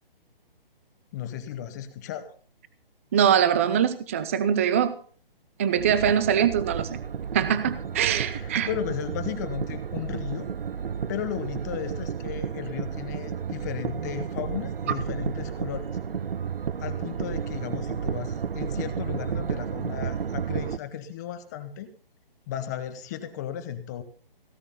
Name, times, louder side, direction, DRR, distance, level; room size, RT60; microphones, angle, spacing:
voice 1, 1.1-2.3 8.1-10.5 11.1-15.9 16.8-21.9 22.5-24.0, left 9 dB, 20° left, 10 dB, 0.9 m, -35 dB
voice 2, 3.1-4.9 5.6-7.0 7.3-8.7, right 8 dB, 15° right, 14 dB, 0.5 m, -23 dB
sound 1, 5.8-20.8, right 7 dB, 70° right, 0.9 m, -32 dB
17.5 x 8.9 x 5.5 m, 0.43 s
hypercardioid pair, 155°, 29 cm